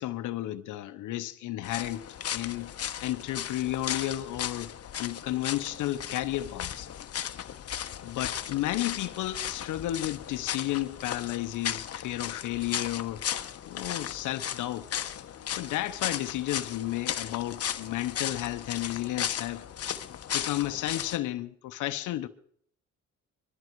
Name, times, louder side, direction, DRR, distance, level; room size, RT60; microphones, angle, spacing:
voice 1, 0.0-2.1 2.3-2.7 3.0-6.9 8.0-13.2 13.6-14.9 15.5-19.6 20.3-22.3, left 15 dB, 85° left, 0.9 m, -32 dB
sound 1, 1.6-21.2, left 10 dB, 50° left, 1.0 m, -36 dB
22.5 x 13.0 x 4.7 m
cardioid pair, 90°, 30 cm